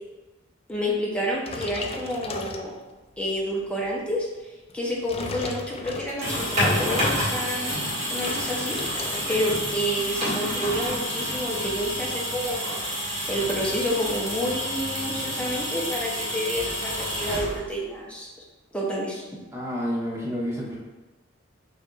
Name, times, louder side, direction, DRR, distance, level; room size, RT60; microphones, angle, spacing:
voice 1, 0.7-2.7 3.2-4.3 4.7-7.8 8.1-12.8 13.3-18.3 18.7-19.2, equal, 5° left, -4 dB, 0.8 m, -29 dB
sound 1, 1.4-3.1 3.7-3.9 4.7-6.5 7.3-9.6 9.9-10.2 10.5-10.6 10.8-11.9, left 3 dB, 30° left, 0.3 m, -37 dB
sound 2, 6.0-17.9, equal, 40° right, 1.4 m, -29 dB
voice 2, 19.5-20.8, equal, 15° right, -6 dB, 1.1 m, -29 dB
6.2 x 2.7 x 2.4 m, 1.2 s
head